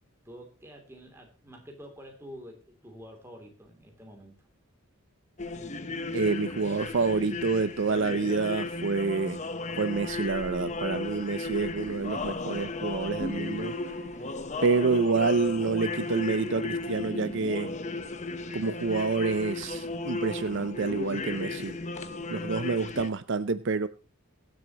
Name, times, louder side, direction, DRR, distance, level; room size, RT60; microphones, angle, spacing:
voice 1, 0.2-4.4, equal, 10° right, 2 dB, 2.9 m, -48 dB
sound 1, 5.4-23.1, left 3 dB, 35° left, 1.0 m, -35 dB
voice 2, 6.1-9.4 9.8-13.7 14.6-17.7 18.5-21.8 22.3-23.9, right 4 dB, 60° right, 13 dB, 0.6 m, -28 dB
23.0 x 7.7 x 3.0 m, 0.32 s
head